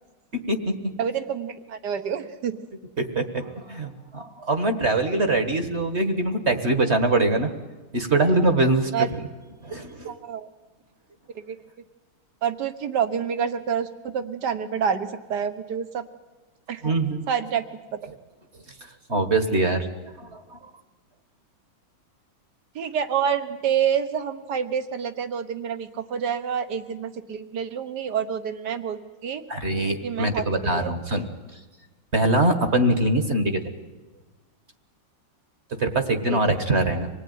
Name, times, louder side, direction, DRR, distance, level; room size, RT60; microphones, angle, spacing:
voice 1, 1.0-2.6 8.9-9.1 10.1-10.5 11.5-11.6 12.4-16.0 16.7-16.8 17.3-17.6 22.7-29.4 30.0-30.9 36.3-36.4, right 7 dB, 55° right, 10 dB, 1.8 m, -27 dB
voice 2, 3.0-7.5 7.9-9.0 9.6-10.1 16.8-17.2 19.1-19.9 20.2-20.6 29.5-31.3 32.1-33.7 35.8-37.1, right 2 dB, 35° right, 8 dB, 1.7 m, -23 dB
26.0 x 19.0 x 9.5 m, 1.3 s
omnidirectional pair, 2.2 m